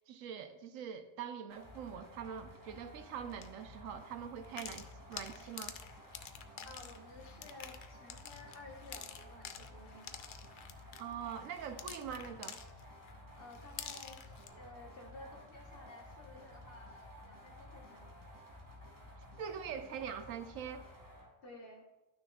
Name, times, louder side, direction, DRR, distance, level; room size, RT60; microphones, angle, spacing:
voice 1, 0.0-5.8 11.0-12.6 19.4-20.8, right 8 dB, 85° right, 9 dB, 1.0 m, -43 dB
sound 1, 1.5-21.3, left 1 dB, 15° right, 1.3 m, -54 dB
sound 2, 3.3-3.5 4.4-13.1 13.5-14.5, left 8 dB, 65° left, 0.5 m, -48 dB
voice 2, 6.6-10.2 13.3-18.2 21.4-21.9, left 2 dB, 50° left, 1 dB, 1.3 m, -54 dB
11.5 x 6.3 x 2.3 m, 1.1 s
omnidirectional pair, 1.3 m